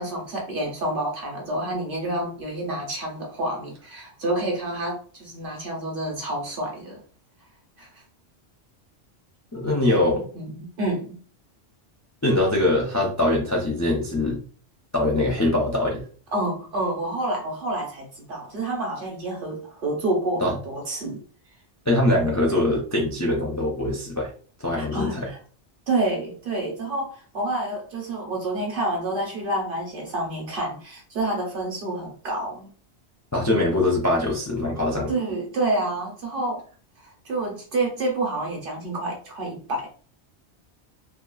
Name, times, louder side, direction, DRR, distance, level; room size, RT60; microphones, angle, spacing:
voice 1, 0.0-7.0 7.8-8.0 9.7-11.2 16.3-21.2 22.1-22.3 24.8-25.4 25.9-32.7 35.1-36.6 37.0-39.9, right 2 dB, 55° right, 0 dB, 1.0 m, -28 dB
voice 2, 9.5-10.2 12.2-14.4 14.9-16.0 20.4-20.5 21.9-24.3 24.6-25.3 33.3-35.1, left 1 dB, 25° left, -3 dB, 0.4 m, -22 dB
2.7 x 2.3 x 2.3 m, 0.41 s
omnidirectional pair, 1.2 m